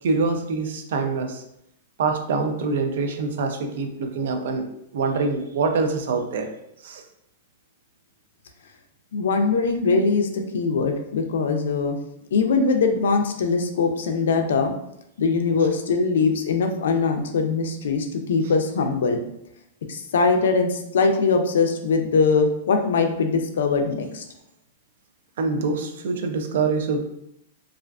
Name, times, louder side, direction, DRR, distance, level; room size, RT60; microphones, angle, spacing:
voice 1, 0.0-1.4 2.0-4.7 4.9-6.5 6.8-7.0 25.4-27.1, right 4 dB, 55° right, 5 dB, 0.3 m, -25 dB
voice 2, 9.1-12.0 12.3-14.7 15.2-19.2 19.9-24.2, left 4 dB, 85° left, 5 dB, 0.3 m, -22 dB
2.3 x 2.3 x 2.2 m, 0.78 s
supercardioid pair, 180°, 0 cm